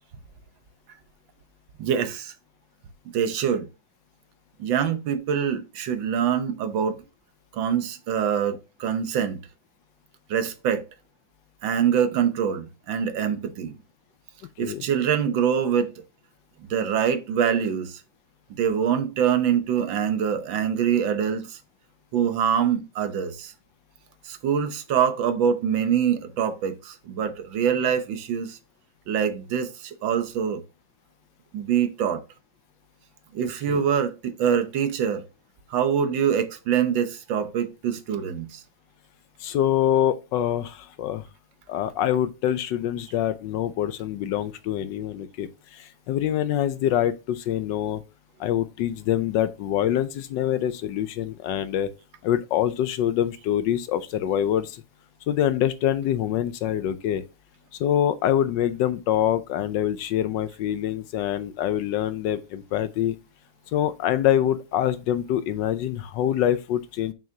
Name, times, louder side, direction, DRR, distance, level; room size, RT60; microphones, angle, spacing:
voice 1, 1.8-2.3 3.1-3.6 4.6-7.0 7.5-9.4 10.3-10.8 11.6-13.7 14.6-15.9 16.6-18.0 18.6-21.6 22.1-23.5 24.2-28.6 29.1-30.6 31.5-32.2 33.3-35.2 35.7-38.6, right 8 dB, 80° right, 1.6 m, -24 dB
voice 2, 39.4-41.2 41.7-48.0 48.4-51.9 52.2-54.8 55.3-57.2 57.8-63.1 63.7-67.1, left 11 dB, 75° left, 1.2 m, -25 dB
7.0 x 6.1 x 2.7 m
omnidirectional pair, 2.1 m